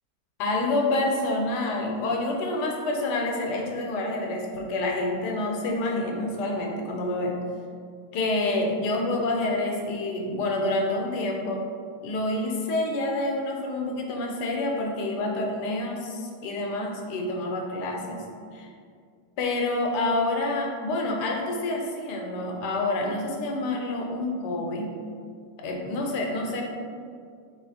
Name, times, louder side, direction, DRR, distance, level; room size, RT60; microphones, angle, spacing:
voice 1, 0.4-7.3 8.1-11.6 12.0-18.2 18.5-18.7 19.4-24.9 25.6-26.6, left 2 dB, 80° left, 0 dB, 1.3 m, -28 dB
4.4 x 2.5 x 4.0 m, 2.2 s
omnidirectional pair, 1.8 m